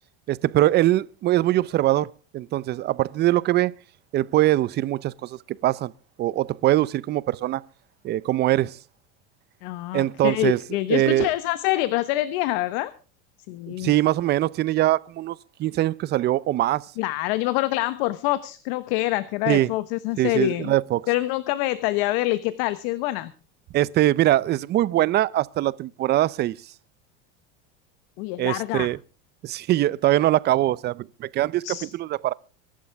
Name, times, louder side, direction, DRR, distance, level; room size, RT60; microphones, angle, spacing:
voice 1, 0.3-3.7 4.1-5.9 6.2-7.6 8.0-8.8 9.9-10.6 10.9-11.3 13.7-16.8 19.5-19.7 20.2-21.0 23.7-26.6 28.4-29.0 29.4-32.3, right 14 dB, 35° right, 0.6 m, -22 dB
voice 2, 9.6-12.9 13.5-13.9 17.0-20.7 21.1-23.3 28.2-28.9 31.6-31.9, left 17 dB, 70° left, 1.2 m, -26 dB
24.0 x 11.5 x 3.5 m
supercardioid pair, 135°, 30 cm